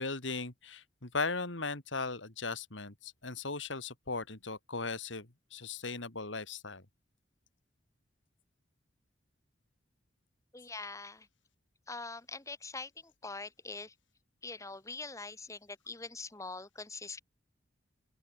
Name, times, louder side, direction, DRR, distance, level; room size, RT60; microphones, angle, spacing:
voice 1, 0.0-6.8, left 3 dB, 75° left, 3.3 m, -38 dB
voice 2, 10.5-11.3 11.9-13.9 14.4-17.2, left 3 dB, 15° left, 1.5 m, -43 dB
open air
head